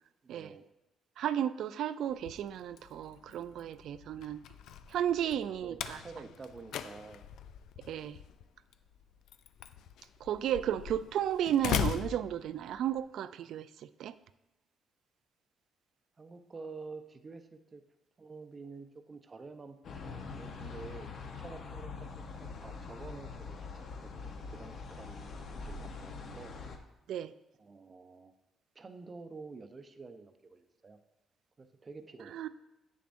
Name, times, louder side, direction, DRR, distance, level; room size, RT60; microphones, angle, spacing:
voice 1, 0.2-0.7 5.3-7.3 16.2-17.8 18.2-25.3 25.6-26.5 27.6-28.3 28.7-31.0 31.6-32.4, right 4 dB, 35° right, 8 dB, 0.6 m, -49 dB
voice 2, 1.2-4.4 4.9-6.0 7.9-8.2 10.2-14.2 27.1-27.3 32.3-32.5, right 10 dB, 75° right, 14 dB, 0.3 m, -33 dB
Slam, 2.1-13.0, left 9 dB, 80° left, 0.3 m, -41 dB
sound 1, 19.8-26.8, left 4 dB, 65° left, 0.8 m, -44 dB
8.4 x 6.9 x 2.6 m, 0.97 s
cardioid pair, 90°, 0 cm